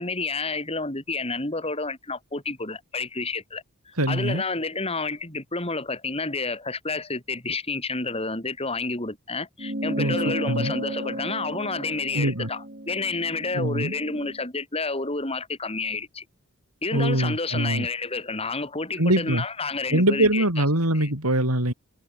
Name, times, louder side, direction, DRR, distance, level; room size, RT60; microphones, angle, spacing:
voice 1, 0.0-16.2 16.8-20.4 20.9-21.1, left 3 dB, 25° left, 4.0 m, -30 dB
voice 2, 4.0-4.4 10.0-10.7 12.1-12.5 13.5-13.9 16.9-17.9 19.0-19.4 19.9-21.7, right 1 dB, 85° right, 7.4 m, -23 dB
sound 1, 9.6-14.4, right 1 dB, 40° right, 7.6 m, -33 dB
head